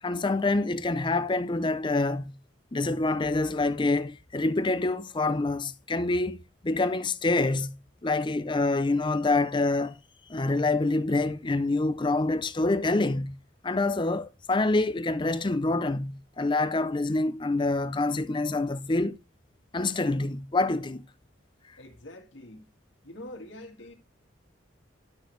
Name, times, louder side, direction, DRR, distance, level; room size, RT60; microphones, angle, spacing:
voice 1, 0.0-2.4 2.7-6.4 6.6-10.0 10.3-13.4 13.6-19.2 19.7-21.1, left 2 dB, 25° left, 0.5 m, -26 dB
voice 2, 21.8-22.6 23.0-23.9, left 1 dB, 70° left, 1.9 m, -44 dB
12.0 x 6.2 x 3.2 m
head